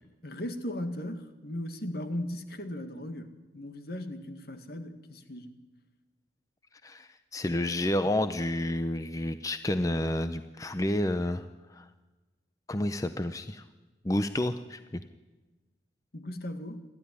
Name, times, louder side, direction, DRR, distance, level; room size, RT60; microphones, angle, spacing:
voice 1, 0.2-5.6 16.1-16.8, left 1 dB, 60° left, 8 dB, 1.9 m, -37 dB
voice 2, 6.8-11.4 11.7-11.9 12.7-13.6 14.0-15.0, left 1 dB, 20° left, 10 dB, 0.6 m, -30 dB
27.5 x 12.5 x 9.9 m, 1.2 s
head